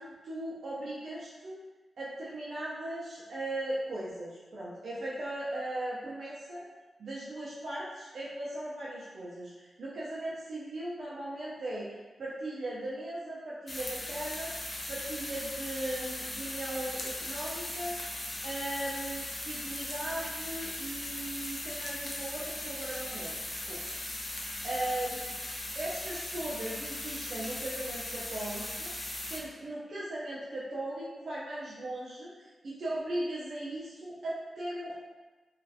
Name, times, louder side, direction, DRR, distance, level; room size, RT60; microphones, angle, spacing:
voice 1, 0.0-1.6 2.0-6.6 7.0-14.5 14.9-17.9 18.4-23.4 23.7-24.0 24.2-24.3 24.6-25.3 25.7-28.9 29.3-34.9, right 1 dB, 60° right, -8 dB, 0.5 m, -38 dB
sound 1, 13.7-29.4, left 1 dB, 30° left, 0.5 m, -38 dB
3.0 x 2.4 x 2.7 m, 1.2 s
wide cardioid pair, 125°, 0 cm